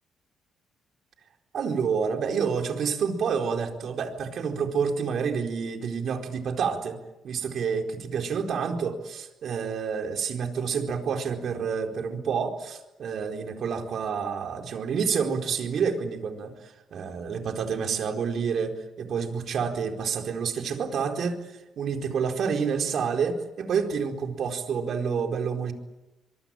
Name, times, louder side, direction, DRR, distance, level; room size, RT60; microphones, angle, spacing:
voice 1, 1.5-7.0 7.2-25.7, right 6 dB, 65° right, 3 dB, 4.4 m, -28 dB
24.5 x 23.5 x 9.0 m, 0.99 s
cardioid pair, 90°, 0 cm